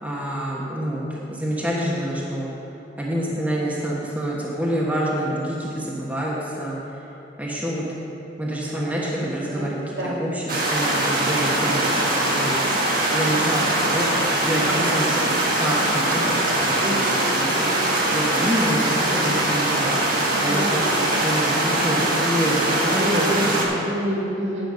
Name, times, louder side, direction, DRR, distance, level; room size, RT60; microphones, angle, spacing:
voice 1, 0.0-2.5 3.0-6.8 7.4-7.8 8.4-12.7 13.1-14.1 14.4-16.4 16.6-17.0 17.3-17.7 18.1-20.9 21.2-23.7, right 1 dB, 10° right, -5 dB, 1.2 m, -27 dB
sound 1, 10.5-23.7, right 1 dB, 50° right, 1.5 m, -22 dB
voice 2, 16.8-17.8 20.4-20.9 23.0-24.7, equal, 70° right, -6 dB, 2.5 m, -28 dB
9.4 x 6.8 x 6.4 m, 2.9 s
head